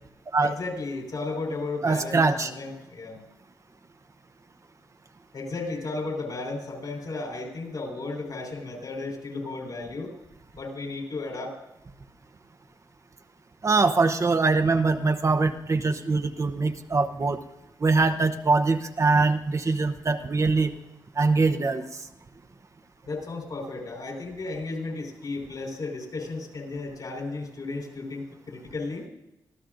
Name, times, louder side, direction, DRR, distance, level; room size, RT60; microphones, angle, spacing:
voice 1, 0.4-3.2 5.3-10.1 10.5-11.6 23.1-29.1, left 3 dB, 60° left, 2 dB, 4.5 m, -34 dB
voice 2, 1.8-2.5 13.6-17.4 17.8-20.7 21.2-21.9, right 3 dB, 40° right, 7 dB, 0.8 m, -23 dB
24.5 x 14.0 x 2.6 m, 0.93 s
cardioid pair, 70°, 8 cm